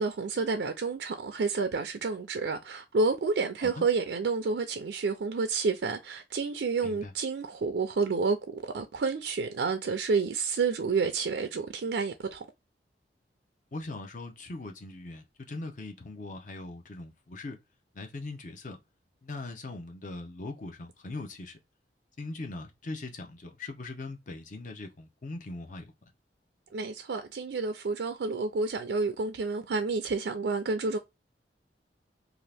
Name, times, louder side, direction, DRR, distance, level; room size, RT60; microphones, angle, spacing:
voice 1, 0.0-8.4 8.7-12.5 26.7-31.0, right 4 dB, 75° right, 0.4 m, -29 dB
voice 2, 13.7-17.6 17.9-18.8 19.2-21.6 22.2-25.9, left 2 dB, 45° left, 0.7 m, -40 dB
2.7 x 2.4 x 3.3 m
head